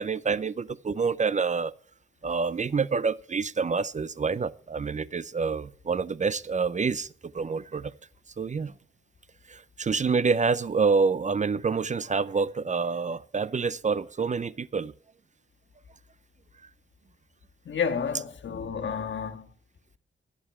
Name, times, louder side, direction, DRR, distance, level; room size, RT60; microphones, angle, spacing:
voice 1, 0.0-1.7 2.2-7.1 7.3-7.9 8.4-8.7 9.5-14.9, right 5 dB, 35° right, 0.6 m, -27 dB
voice 2, 17.6-19.5, left 6 dB, 70° left, 1.6 m, -30 dB
19.5 x 7.8 x 4.5 m
cardioid pair, 65°, 20 cm